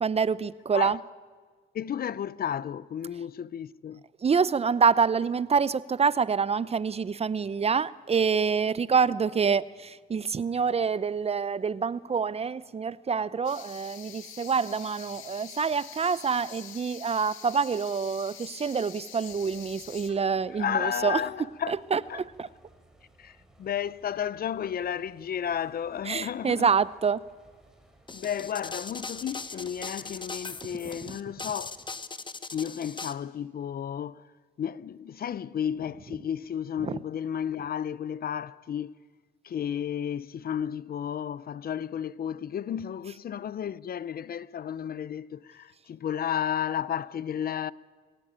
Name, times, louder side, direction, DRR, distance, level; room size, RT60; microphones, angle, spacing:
voice 1, 0.0-1.0 4.2-21.2 21.7-22.5 26.0-27.2 31.0-31.2 36.8-37.0, right 5 dB, 30° right, 0.6 m, -26 dB
voice 2, 1.7-4.0 20.6-21.8 22.1-22.2 23.2-26.7 28.1-31.8 32.5-34.2 34.6-38.9 39.4-47.7, left 9 dB, 50° left, 0.6 m, -32 dB
sound 1, 13.4-20.1, left 10 dB, 90° left, 1.9 m, -46 dB
sound 2, 19.3-32.0, right 1 dB, 5° right, 4.4 m, -60 dB
sound 3, 28.1-33.1, left 4 dB, 25° left, 1.2 m, -39 dB
22.5 x 16.5 x 8.9 m
cardioid pair, 90°, 20 cm